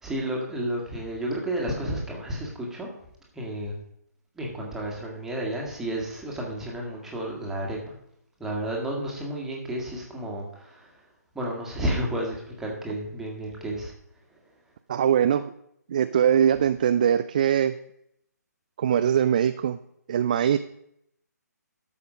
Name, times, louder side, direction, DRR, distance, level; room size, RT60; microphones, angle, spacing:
voice 1, 0.0-2.9 3.3-3.7 4.4-7.8 8.4-11.0 11.3-13.9, right 1 dB, 5° right, -2 dB, 1.9 m, -31 dB
voice 2, 14.9-15.5 15.9-17.7 18.8-19.8 20.1-20.6, right 9 dB, 25° right, 12 dB, 0.3 m, -22 dB
12.5 x 6.7 x 5.1 m, 0.75 s
figure-of-eight pair, 140°, 10 cm